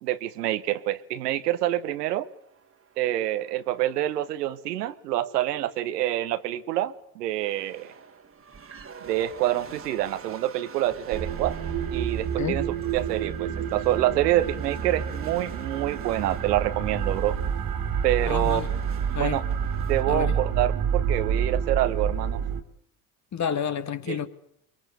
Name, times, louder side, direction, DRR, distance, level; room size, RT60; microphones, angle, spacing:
voice 1, 0.0-2.3 3.0-7.9 9.0-11.6 11.9-12.6 12.9-17.4 18.0-18.6 19.2-19.4 19.9-22.4 24.1-24.2, right 14 dB, 75° right, 1.1 m, -27 dB
sound 1, 2.3-4.6 7.2-20.0, right 6 dB, 25° right, 1.9 m, -47 dB
sound 2, 11.1-22.6, right 7 dB, 45° right, 2.3 m, -28 dB
voice 2, 18.3-18.7 19.1-19.4 20.1-20.4 23.3-24.3, left 8 dB, 35° left, 1.9 m, -29 dB
23.5 x 23.5 x 6.7 m
figure-of-eight pair, 60°, 48 cm